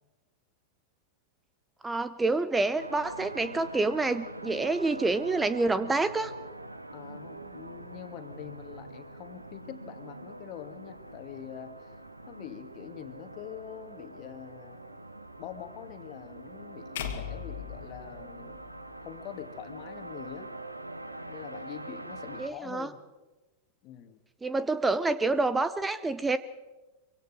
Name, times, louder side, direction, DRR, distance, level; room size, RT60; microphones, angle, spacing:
voice 1, 1.8-6.3 22.4-22.9 24.4-26.4, right 3 dB, 10° right, 14 dB, 0.7 m, -27 dB
sound 1, 2.8-22.5, right 2 dB, 85° right, 1.1 m, -44 dB
voice 2, 6.9-11.9 12.3-14.8 15.4-18.6 19.0-20.5 21.2-23.0 23.8-24.2, left 11 dB, 40° left, 8 dB, 2.0 m, -44 dB
sound 2, 17.0-19.2, left 8 dB, 55° left, 2.2 m, -39 dB
24.5 x 24.5 x 4.8 m, 1.1 s
figure-of-eight pair, 90°, 0 cm